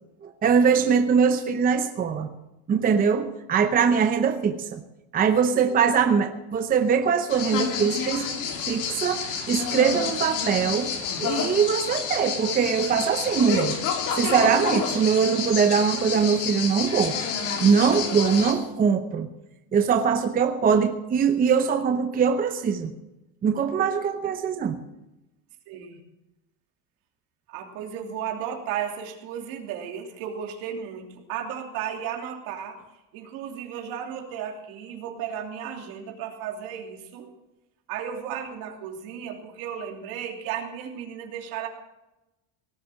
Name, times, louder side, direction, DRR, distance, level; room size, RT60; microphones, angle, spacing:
voice 1, 0.2-2.3 2.7-4.8 5.1-8.3 8.7-10.9 11.2-13.8 14.1-17.2 17.6-19.3 19.7-22.9 23.4-24.8, right 6 dB, 25° right, 7 dB, 0.8 m, -22 dB
sound 1, 7.3-18.5, left 6 dB, 55° left, 2.9 m, -29 dB
voice 2, 25.7-26.0 27.5-32.8 33.1-37.3 37.9-41.7, right 8 dB, 65° right, 2 dB, 3.0 m, -34 dB
18.0 x 7.7 x 7.6 m, 0.95 s
cardioid pair, 150°, 38 cm